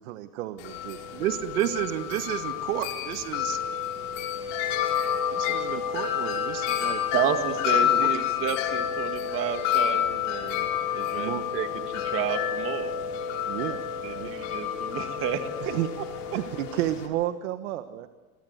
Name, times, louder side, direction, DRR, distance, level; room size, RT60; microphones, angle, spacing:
voice 1, 0.0-1.0 11.2-11.4 13.5-13.8 14.1-14.3 15.6-15.9 16.3-18.1, right 14 dB, 60° right, 10 dB, 1.5 m, -31 dB
Wind chime, 0.6-17.1, left 9 dB, 55° left, 5.9 m, -29 dB
voice 2, 1.1-3.6 5.3-7.0 7.8-8.1, right 11 dB, 75° right, 8 dB, 2.1 m, -31 dB
voice 3, 7.1-10.7 10.9-12.9 14.0-15.7, right 10 dB, 30° right, 7 dB, 2.0 m, -31 dB
29.5 x 24.0 x 8.1 m, 1.3 s
supercardioid pair, 175°, 44 cm